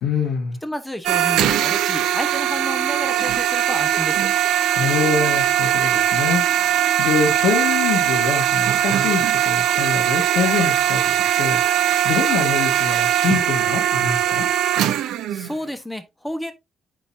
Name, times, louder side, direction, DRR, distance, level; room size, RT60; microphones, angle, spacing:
voice 1, 0.0-0.6 4.8-14.5, left 5 dB, 90° left, 1.6 m, -25 dB
voice 2, 0.6-4.3 15.3-16.5, equal, 10° left, 1.1 m, -31 dB
sound 1, 1.0-15.5, right 11 dB, 85° right, 0.6 m, -20 dB
9.0 x 3.9 x 2.7 m
cardioid pair, 90°, 0 cm